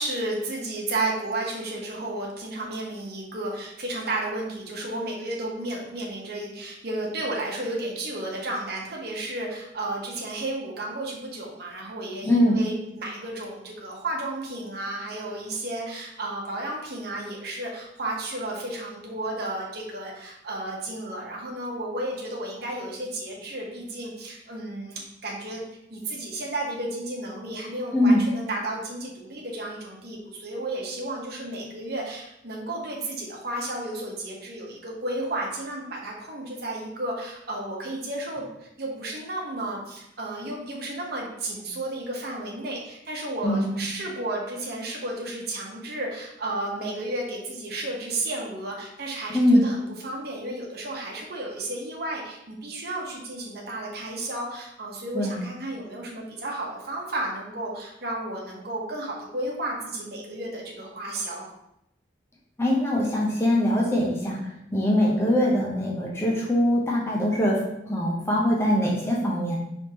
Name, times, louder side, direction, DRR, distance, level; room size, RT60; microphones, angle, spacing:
voice 1, 0.0-25.6 25.9-61.5, right 1 dB, 55° right, -1 dB, 1.0 m, -33 dB
voice 2, 12.2-12.6 27.9-28.2 43.4-43.8 49.3-49.6 55.1-55.4 62.6-64.4 64.7-67.6 67.9-69.6, left 1 dB, 15° left, -4 dB, 0.7 m, -22 dB
4.7 x 3.5 x 2.9 m, 0.82 s
head